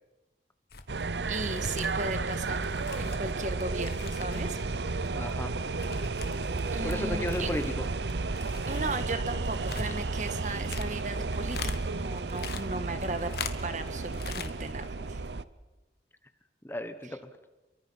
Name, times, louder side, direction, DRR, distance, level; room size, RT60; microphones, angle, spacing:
sound 1, 0.7-1.0 1.3-4.6 4.9-7.0 7.2-11.8 12.1-13.9 14.1-14.5 14.8-14.9, left 5 dB, 65° left, 1.6 m, -42 dB
sound 2, 0.9-15.4, right 3 dB, 80° right, 0.8 m, -32 dB
voice 1, 1.3-2.7 3.0-4.6 6.7-7.5 8.7-13.3 13.6-15.2, right 2 dB, 45° right, 10 dB, 1.7 m, -36 dB
voice 2, 5.1-5.6 6.8-7.9 16.6-17.2, left 1 dB, 15° left, 9 dB, 1.1 m, -34 dB
29.0 x 23.5 x 5.7 m, 1.1 s
head